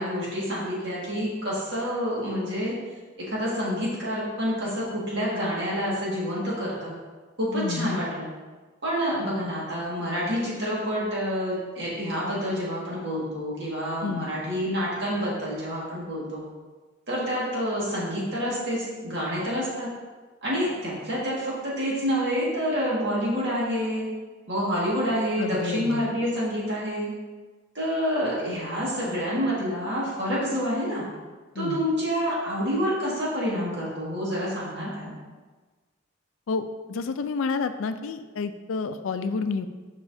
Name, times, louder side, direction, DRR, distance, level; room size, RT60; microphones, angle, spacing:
voice 1, 0.0-2.7 3.2-6.9 7.4-8.3 8.8-16.4 17.1-19.9 20.4-24.1 24.5-27.1 27.8-31.1 31.6-35.1, equal, 55° right, -7 dB, 1.8 m, -28 dB
voice 2, 7.5-8.0 14.0-14.3 25.4-26.0 31.6-31.8 36.5-39.7, left 4 dB, 75° left, 10 dB, 0.4 m, -29 dB
6.9 x 5.7 x 2.7 m, 1.3 s
head